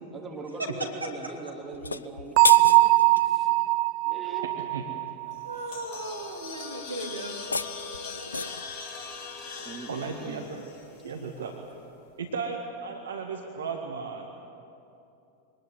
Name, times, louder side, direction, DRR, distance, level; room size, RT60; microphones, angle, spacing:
voice 1, 0.1-3.6 4.1-4.5 5.3-5.4 9.6-10.5, right 3 dB, 15° right, 0 dB, 3.0 m, -41 dB
voice 2, 0.8-1.3 5.4-7.3 7.8-7.9, right 2 dB, 85° right, 1 dB, 2.7 m, -37 dB
sound 1, 1.7-3.3 7.2-8.7, left 4 dB, 75° left, 0.5 m, -31 dB
Bell, 2.4-6.0, right 21 dB, 45° right, 0.4 m, -22 dB
sound 2, 5.3-11.6, left 5 dB, 40° left, 2.7 m, -41 dB
voice 3, 9.9-10.6 11.0-11.5 12.2-14.5, right 5 dB, 65° right, 3 dB, 1.7 m, -35 dB
24.5 x 19.5 x 8.0 m, 2.8 s
figure-of-eight pair, 90°, 0 cm